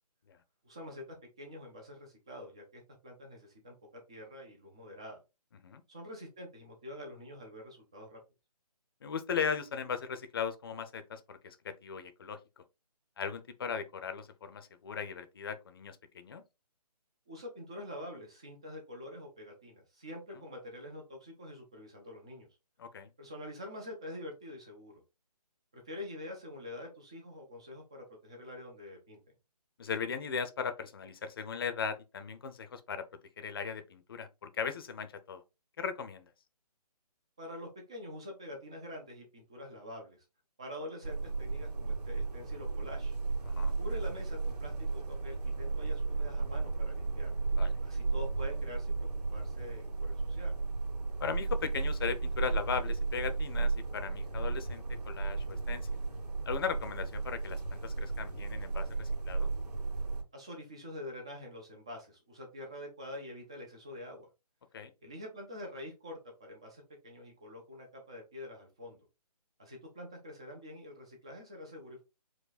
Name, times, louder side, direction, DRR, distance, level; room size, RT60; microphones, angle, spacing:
voice 1, 0.6-1.0 1.4-5.2 5.9-8.2 17.3-22.5 23.2-24.9 25.7-29.2 37.4-40.2 40.6-43.1 43.8-47.3 47.8-50.5 60.3-64.3 65.0-69.0 69.6-72.0, left 1 dB, 10° right, 0.3 m, -46 dB
voice 2, 9.0-12.4 13.2-16.4 22.8-23.1 29.8-33.0 33.4-35.4 35.8-36.3 43.5-43.8 47.5-47.7 51.2-56.0 56.5-59.5 64.7-64.9, left 6 dB, 35° left, 0.6 m, -38 dB
sound 1, 41.0-60.2, right 3 dB, 75° right, 2.0 m, -34 dB
4.7 x 2.2 x 3.9 m
figure-of-eight pair, 150°, 21 cm